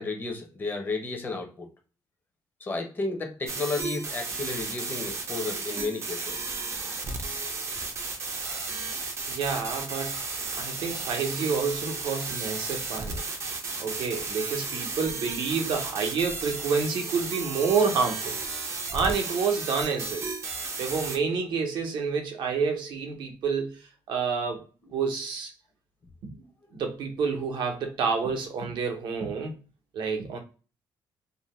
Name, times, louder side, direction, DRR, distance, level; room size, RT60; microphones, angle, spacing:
voice 1, 0.0-1.7 2.6-6.5, left 3 dB, 25° left, 0.6 m, -33 dB
sound 1, 3.5-21.2, right 3 dB, 35° right, 0.4 m, -34 dB
voice 2, 9.3-10.2 10.5-13.2 13.8-18.3 18.9-20.3 20.8-23.8 24.1-24.6 24.9-25.5 26.2-29.6 29.9-30.4, right 5 dB, 75° right, 0.7 m, -29 dB
2.5 x 2.1 x 3.1 m
cardioid pair, 170°, 8 cm